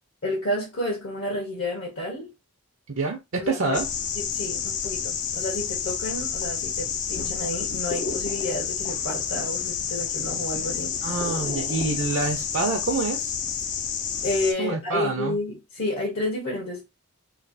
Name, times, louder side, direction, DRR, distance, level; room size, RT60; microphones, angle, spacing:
voice 1, 0.2-2.3 3.4-3.8 4.2-10.9 14.2-16.9, left 1 dB, 65° left, 1.1 m, -30 dB
voice 2, 3.0-3.9 11.0-13.3 14.6-15.4, right 3 dB, 65° right, 0.6 m, -26 dB
sound 1, 3.7-14.5, left 7 dB, 35° left, 0.3 m, -29 dB
3.2 x 2.3 x 2.6 m
head